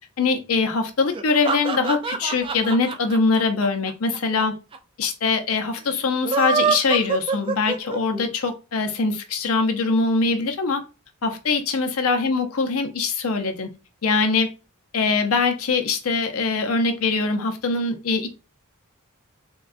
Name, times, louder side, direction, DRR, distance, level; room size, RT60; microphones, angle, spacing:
voice 1, 0.2-4.5 5.0-10.8 11.2-13.7 14.0-14.5 14.9-18.3, left 4 dB, 70° left, 0.6 m, -22 dB
sound 1, 1.1-4.4 4.7-4.8 5.0-5.1 6.1-8.2, right 5 dB, 25° right, 0.3 m, -25 dB
3.6 x 2.3 x 2.4 m
head